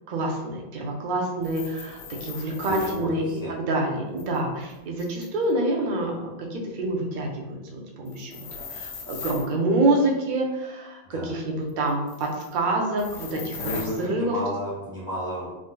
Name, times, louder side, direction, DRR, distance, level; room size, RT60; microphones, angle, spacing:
voice 1, 0.1-8.4 8.7-14.3, right 2 dB, 55° right, 0 dB, 0.6 m, -27 dB
sound 1, 1.4-3.0 4.2-5.5 8.1-9.5 11.9-12.5 13.0-14.0, left 5 dB, 90° left, 1.0 m, -39 dB
voice 2, 2.7-3.5 11.1-11.3 13.3-15.5, equal, 35° left, -9 dB, 0.8 m, -32 dB
3.6 x 2.5 x 2.2 m, 1.0 s
omnidirectional pair, 1.2 m